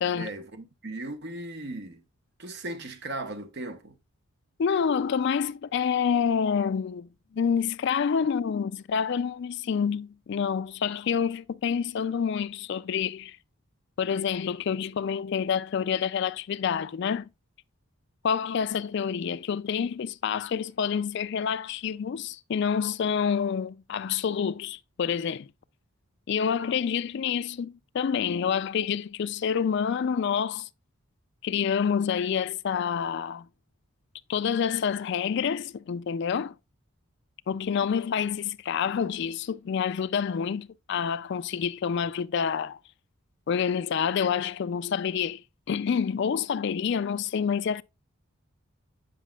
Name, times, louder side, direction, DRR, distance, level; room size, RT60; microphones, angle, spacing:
voice 1, 0.1-2.0 2.4-3.9, right 2 dB, 50° right, 0.8 m, -37 dB
voice 2, 4.6-13.4 14.0-17.3 18.2-25.5 26.3-30.7 31.4-33.5 34.3-36.5 37.5-42.8 43.5-45.4 45.7-47.8, left 7 dB, 50° left, 0.3 m, -28 dB
9.2 x 5.0 x 2.3 m
head